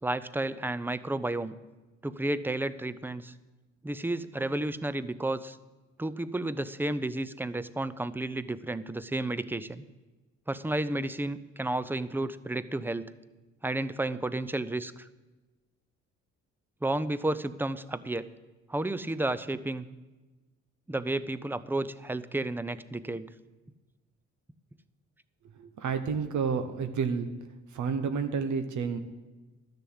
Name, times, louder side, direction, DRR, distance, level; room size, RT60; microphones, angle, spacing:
voice 1, 0.0-1.5 2.0-3.3 3.8-5.6 6.0-9.8 10.5-13.1 13.6-15.1 16.8-18.3 18.7-19.9 20.9-23.3, right 2 dB, 5° right, 15 dB, 0.5 m, -32 dB
voice 2, 25.6-27.3 27.7-29.0, right 5 dB, 75° right, 8 dB, 1.0 m, -30 dB
12.0 x 6.7 x 7.9 m, 1.2 s
cardioid pair, 90°, 30 cm